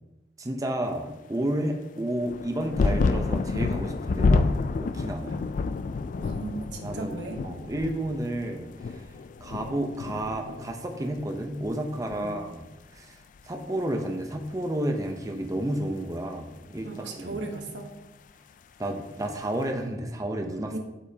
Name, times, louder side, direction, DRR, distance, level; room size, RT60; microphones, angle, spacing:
voice 1, 0.4-5.4 6.8-7.2 7.4-9.0 9.4-12.7 12.9-13.2 13.5-16.9 17.2-17.4 18.8-20.7, right 1 dB, 20° right, 3 dB, 0.6 m, -31 dB
sound 1, 2.2-11.3 11.5-12.4 13.4-13.5, left 3 dB, 45° left, 0.3 m, -29 dB
voice 2, 6.2-7.4 12.1-12.4 16.8-17.9 20.7-20.8, right 3 dB, 80° right, 3 dB, 1.1 m, -36 dB
8.4 x 7.2 x 2.8 m, 1.0 s
head